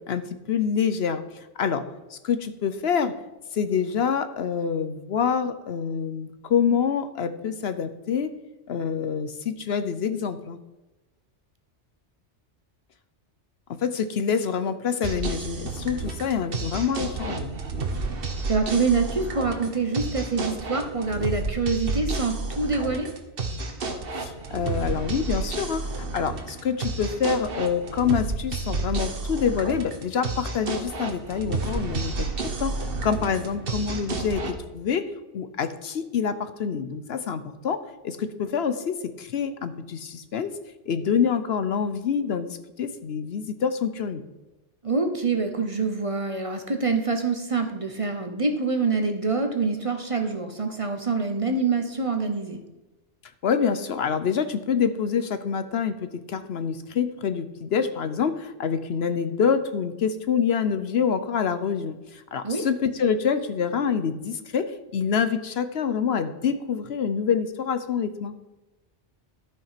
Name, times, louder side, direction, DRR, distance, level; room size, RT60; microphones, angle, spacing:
voice 1, 0.1-1.8 2.1-3.1 3.5-8.3 8.7-10.6 13.7-17.5 24.2-40.6 40.9-44.2 53.4-68.3, left 7 dB, 65° left, 11 dB, 0.9 m, -26 dB
sound 1, 15.0-34.5, right 3 dB, 55° right, 1.3 m, -31 dB
voice 2, 18.5-23.1 44.8-52.6 62.4-62.6, right 4 dB, 30° right, 5 dB, 1.0 m, -25 dB
12.5 x 5.5 x 5.8 m, 1.1 s
omnidirectional pair, 1.2 m